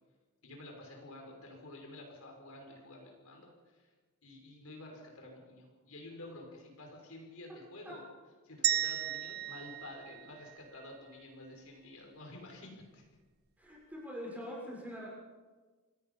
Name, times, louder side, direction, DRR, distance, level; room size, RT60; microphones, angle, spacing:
voice 1, 0.4-3.9 4.2-8.0 8.4-13.0, left 1 dB, 70° left, 1 dB, 6.0 m, -50 dB
sound 1, 8.6-10.9, right 12 dB, 45° right, 0.9 m, -34 dB
voice 2, 13.6-15.1, equal, 5° right, -3 dB, 6.5 m, -43 dB
27.0 x 18.5 x 5.7 m, 1.3 s
head